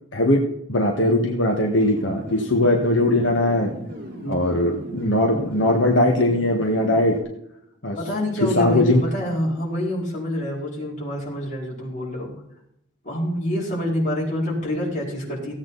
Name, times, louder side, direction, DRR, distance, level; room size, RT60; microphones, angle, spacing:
voice 1, 0.7-3.7 4.3-7.1 7.8-8.0 8.4-9.0, left 1 dB, 75° left, 0 dB, 1.7 m, -20 dB
sound 1, 1.7-7.2, equal, 50° right, 3.3 m, -37 dB
voice 2, 8.0-12.3 13.0-15.5, left 1 dB, 40° left, -5 dB, 5.1 m, -27 dB
16.5 x 8.7 x 4.1 m, 0.78 s
head